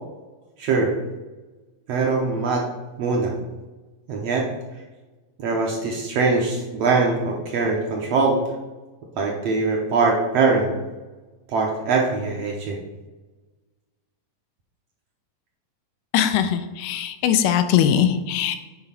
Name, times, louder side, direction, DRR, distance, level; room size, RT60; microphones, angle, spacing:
voice 1, 0.6-0.9 1.9-2.6 3.0-3.3 4.1-4.5 5.4-8.4 9.2-10.7 11.5-12.8, right 4 dB, 65° right, -1 dB, 1.7 m, -22 dB
voice 2, 16.1-18.6, left 9 dB, 90° left, 9 dB, 2.3 m, -21 dB
8.8 x 3.9 x 5.7 m, 1.2 s
omnidirectional pair, 3.8 m